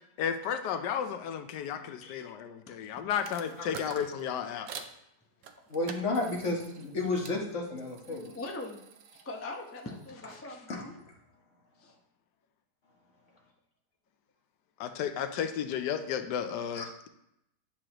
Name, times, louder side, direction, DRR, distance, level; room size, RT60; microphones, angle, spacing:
voice 1, 0.2-4.9 8.1-8.4 14.8-17.1, left 8 dB, 90° left, 9 dB, 1.2 m, -33 dB
sound 1, 3.1-4.9 5.4-7.4 7.8-10.4, right 7 dB, 65° right, 1.0 m, -48 dB
voice 2, 5.7-8.3 10.7-11.2 16.7-16.8, left 2 dB, 50° left, -1 dB, 1.5 m, -32 dB
voice 3, 8.3-8.8 9.2-10.9 11.8-11.9, left 2 dB, 15° left, 1 dB, 0.5 m, -41 dB
10.0 x 6.2 x 3.0 m, 0.81 s
omnidirectional pair, 1.8 m